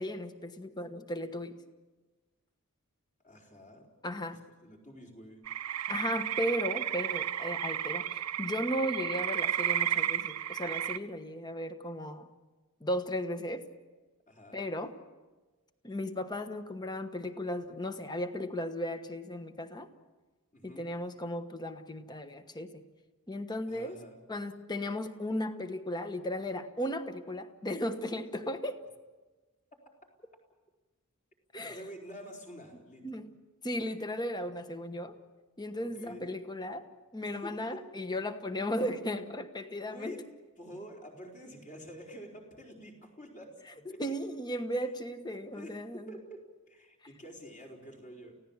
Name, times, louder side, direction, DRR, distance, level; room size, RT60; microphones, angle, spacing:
voice 1, 0.0-1.5 4.0-4.4 5.9-12.3 12.8-13.7 14.5-14.9 15.8-19.9 20.6-22.8 23.3-24.0 24.3-28.8 31.5-31.8 33.0-33.3 33.6-35.2 35.6-36.8 37.1-40.2 43.8-46.1, left 1 dB, 20° left, 9 dB, 1.2 m, -36 dB
voice 2, 3.2-3.9 4.3-5.4 14.3-14.6 20.5-20.9 23.7-24.2 31.7-33.0 35.8-36.3 37.2-37.8 39.9-40.2 40.6-44.1 45.5-46.4 46.7-48.3, equal, 35° left, -1 dB, 4.5 m, -48 dB
sound 1, 5.5-11.0, right 11 dB, 80° right, 0.8 m, -32 dB
29.5 x 16.5 x 7.3 m, 1.3 s
head